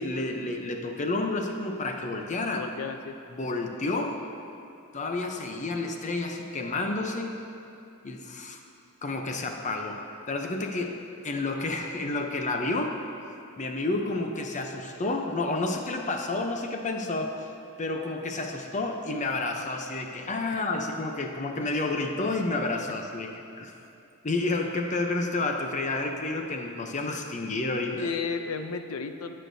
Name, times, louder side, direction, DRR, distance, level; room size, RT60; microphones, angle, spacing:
voice 1, 0.0-2.7 3.3-4.2 4.9-7.4 8.0-8.6 9.0-10.0 10.3-11.0 11.2-13.0 13.6-17.5 17.8-23.3 23.6-23.7 24.2-28.1, left 2 dB, 35° left, 3 dB, 0.7 m, -30 dB
voice 2, 2.5-3.2 20.5-20.6 28.0-29.3, left 5 dB, 70° left, 8 dB, 0.5 m, -33 dB
17.5 x 6.5 x 2.7 m, 2.6 s
head